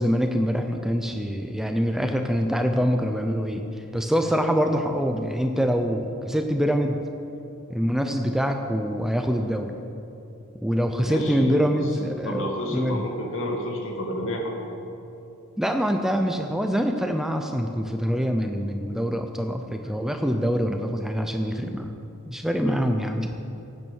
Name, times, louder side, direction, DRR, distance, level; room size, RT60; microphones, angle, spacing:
voice 1, 0.0-7.0 7.7-9.7 10.6-13.0 15.6-21.9 22.3-23.3, equal, ahead, 5 dB, 0.5 m, -25 dB
voice 2, 11.0-11.6 12.3-14.5, left 1 dB, 60° left, 1 dB, 2.2 m, -30 dB
16.5 x 9.2 x 6.3 m, 2.8 s
head